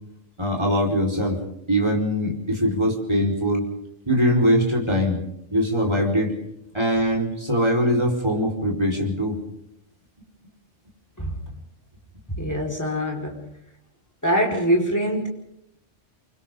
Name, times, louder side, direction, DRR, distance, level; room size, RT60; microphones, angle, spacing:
voice 1, 0.4-1.4 1.7-3.7 4.1-5.2 5.5-6.3 6.7-9.4, equal, 20° right, 1 dB, 4.7 m, -22 dB
voice 2, 12.3-13.4 14.2-15.3, equal, 15° left, 0 dB, 4.7 m, -23 dB
29.0 x 24.0 x 3.8 m, 0.79 s
omnidirectional pair, 1.3 m